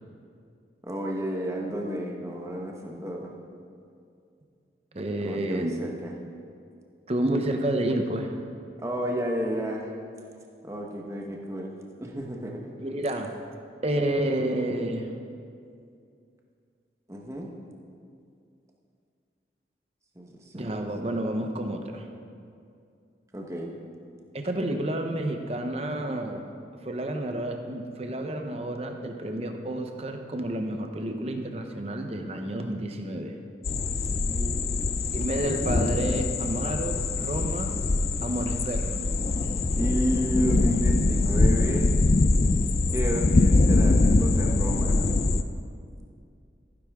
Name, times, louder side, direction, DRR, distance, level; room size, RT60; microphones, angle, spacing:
voice 1, 0.8-3.3 5.2-6.1 8.8-9.9 10.6-12.6 17.1-17.5 20.2-20.8 23.3-23.7 34.0-35.0 39.8-42.0 42.9-45.1, equal, 15° right, 0 dB, 1.1 m, -32 dB
voice 2, 4.9-5.7 7.1-8.4 12.8-13.4 13.8-15.2 20.5-22.1 24.3-26.5 26.8-33.4 35.1-37.8 38.2-39.0, right 1 dB, 35° right, 5 dB, 0.8 m, -30 dB
sound 1, 33.6-45.4, left 2 dB, 35° left, 0.4 m, -23 dB
15.5 x 10.0 x 3.6 m, 2.4 s
head